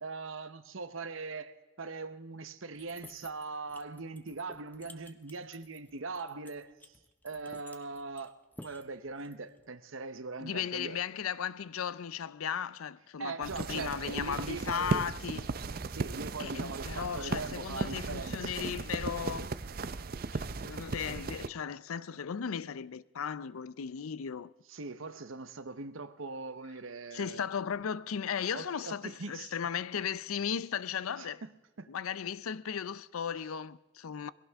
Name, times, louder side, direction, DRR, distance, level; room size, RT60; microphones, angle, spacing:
voice 1, 0.0-6.7 7.2-8.3 8.6-11.0 13.2-15.1 15.9-18.5 24.7-27.5 28.5-29.6 31.2-31.5 31.8-31.9, right 3 dB, 70° right, 0.9 m, -41 dB
sound 1, 2.7-9.6, left 2 dB, 10° left, 0.7 m, -53 dB
voice 2, 10.4-15.5 16.4-19.5 20.3-24.5 27.1-31.4 31.9-34.3, left 7 dB, 85° left, 0.5 m, -36 dB
sound 2, 13.4-21.5, right 3 dB, 45° right, 0.5 m, -37 dB
21.5 x 16.5 x 3.6 m
head